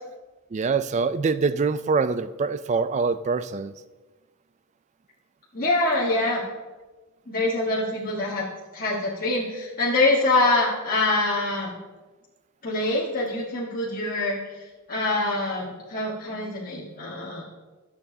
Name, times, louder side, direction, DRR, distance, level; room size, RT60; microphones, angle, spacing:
voice 1, 0.5-3.7, right 4 dB, 35° right, 13 dB, 0.3 m, -24 dB
voice 2, 5.5-6.4 7.3-8.5 8.7-11.8 12.6-14.4 14.9-17.4, left 2 dB, 40° left, -6 dB, 1.4 m, -24 dB
13.5 x 6.9 x 2.7 m, 1.2 s
head